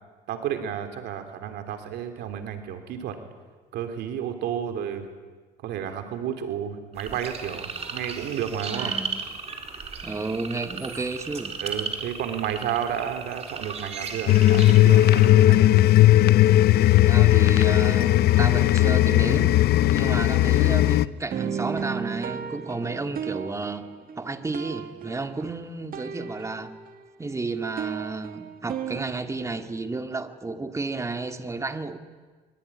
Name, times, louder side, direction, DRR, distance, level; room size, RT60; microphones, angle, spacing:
voice 1, 0.3-3.1 3.7-5.1 5.6-8.9 11.6-15.9 25.4-25.5, right 9 dB, 80° right, 6 dB, 3.2 m, -32 dB
sound 1, 6.9-15.3, right 5 dB, 40° right, 4.2 m, -35 dB
voice 2, 8.7-9.2 10.0-11.5 17.1-19.6 19.9-23.8 24.2-26.7 27.2-32.0, right 3 dB, 15° right, 7 dB, 2.1 m, -32 dB
sound 2, 14.3-21.1, left 15 dB, 65° left, 0.7 m, -17 dB
sound 3, 21.3-27.1 27.3-29.1, right 7 dB, 60° right, 2.1 m, -35 dB
24.0 x 23.5 x 9.9 m, 1.4 s
cardioid pair, 110°, 17 cm